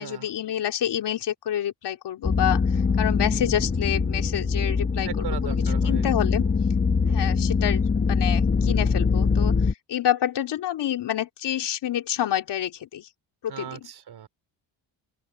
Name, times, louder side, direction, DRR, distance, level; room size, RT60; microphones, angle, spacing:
voice 1, 0.0-6.5 7.1-9.6 9.9-13.1 13.4-13.8, left 11 dB, 65° left, 3.3 m, -28 dB
sound 1, 2.2-9.7, left 5 dB, 25° left, 1.3 m, -23 dB
sound 2, 2.6-8.4, right 2 dB, 10° right, 3.7 m, -45 dB
voice 2, 5.0-6.1 7.0-7.4 13.5-14.3, right 9 dB, 60° right, 3.7 m, -38 dB
open air
cardioid pair, 125°, 44 cm